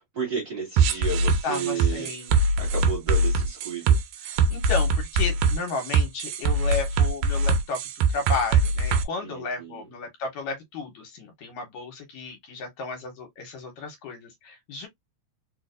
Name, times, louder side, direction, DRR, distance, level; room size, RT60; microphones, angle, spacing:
voice 1, 0.1-2.3 2.6-4.0 9.2-9.9, right 5 dB, 40° right, 1.7 m, -32 dB
sound 1, 0.8-9.0, right 3 dB, 80° right, 1.7 m, -22 dB
voice 2, 1.4-2.3 4.2-7.8 8.1-14.9, left 4 dB, 75° left, 2.3 m, -33 dB
4.5 x 2.5 x 2.4 m
omnidirectional pair, 3.4 m